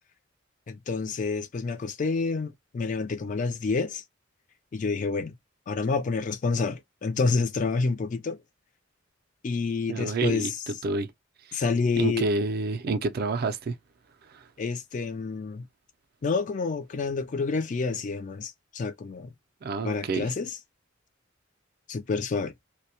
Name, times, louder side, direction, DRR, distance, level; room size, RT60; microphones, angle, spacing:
voice 1, 0.7-4.0 4.7-5.3 5.7-8.4 9.4-10.6 11.5-12.3 14.6-15.7 16.2-19.3 19.8-20.5 21.9-22.5, left 4 dB, 40° left, 0.3 m, -28 dB
voice 2, 9.9-11.1 11.5-11.6 12.0-13.8 14.3-14.4 19.6-20.3, right 3 dB, 50° right, 0.4 m, -29 dB
2.1 x 2.1 x 2.7 m
head